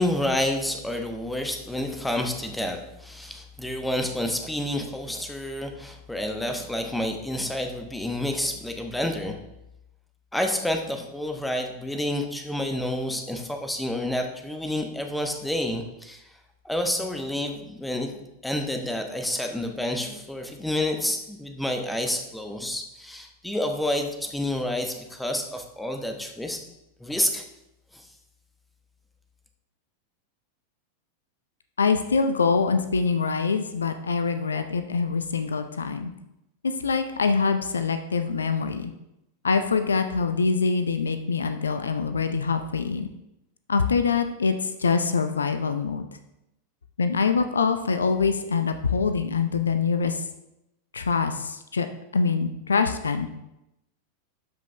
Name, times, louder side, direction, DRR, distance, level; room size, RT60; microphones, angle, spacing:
voice 1, 0.0-9.4 10.3-16.2 16.6-26.6 27.0-27.4 27.9-28.1, left 1 dB, 5° left, 4 dB, 1.0 m, -29 dB
voice 2, 31.8-36.1 36.6-38.9 39.4-43.1 43.7-46.1 47.0-50.2 50.9-51.9 52.1-53.3, left 5 dB, 70° left, 9 dB, 0.5 m, -24 dB
12.5 x 5.2 x 3.3 m, 0.88 s
figure-of-eight pair, 90°, 0 cm